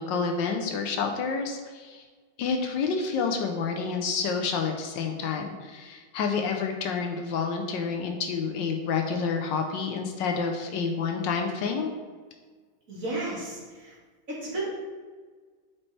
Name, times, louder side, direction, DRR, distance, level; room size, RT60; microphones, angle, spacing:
voice 1, 0.0-2.0 2.4-11.9, left 5 dB, 75° left, 3 dB, 1.3 m, -29 dB
voice 2, 12.9-13.9 14.3-14.7, right 2 dB, 45° right, -6 dB, 2.2 m, -33 dB
8.5 x 4.4 x 3.3 m, 1.5 s
omnidirectional pair, 2.1 m